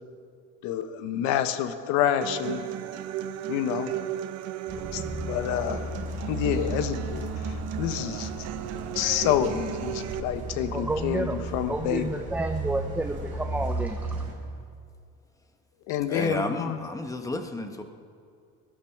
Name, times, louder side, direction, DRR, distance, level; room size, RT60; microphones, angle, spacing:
voice 1, 0.6-2.6 3.5-3.9 4.9-5.9 6.3-8.5 8.9-12.1 15.9-16.8, left 10 dB, 80° left, 10 dB, 1.2 m, -28 dB
Human voice / Acoustic guitar, 2.2-10.2, right 12 dB, 55° right, 0.8 m, -35 dB
sound 1, 4.7-14.3, right 2 dB, 25° right, 4.8 m, -35 dB
voice 2, 10.7-14.2, right 2 dB, 5° right, 5 dB, 0.6 m, -30 dB
voice 3, 16.1-17.8, left 2 dB, 10° left, 6 dB, 1.2 m, -31 dB
20.0 x 11.5 x 5.9 m, 2.3 s
cardioid pair, 135°, 30 cm